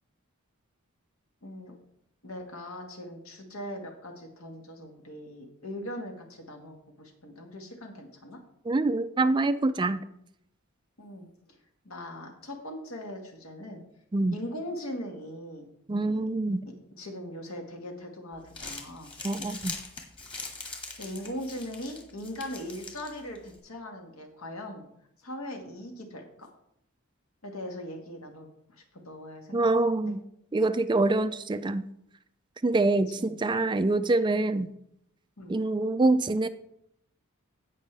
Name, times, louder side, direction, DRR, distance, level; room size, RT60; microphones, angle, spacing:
voice 1, 1.4-1.8 2.2-8.4 11.0-11.6 11.8-13.8 14.3-15.7 15.9-16.2 17.0-19.1 20.6-20.7 21.0-24.8 25.2-26.5 27.4-29.6 33.1-33.4 35.4-35.6, left 1 dB, 75° left, 2 dB, 1.8 m, -40 dB
voice 2, 8.7-10.0 14.1-14.4 15.9-16.7 19.2-19.8 29.5-30.2 30.5-31.8 32.6-34.7 35.5-36.5, right 2 dB, 20° right, 12 dB, 0.4 m, -25 dB
Crumpling crinkling, 18.3-23.6, left 3 dB, 25° left, 1.8 m, -42 dB
16.0 x 5.5 x 3.4 m, 0.74 s
head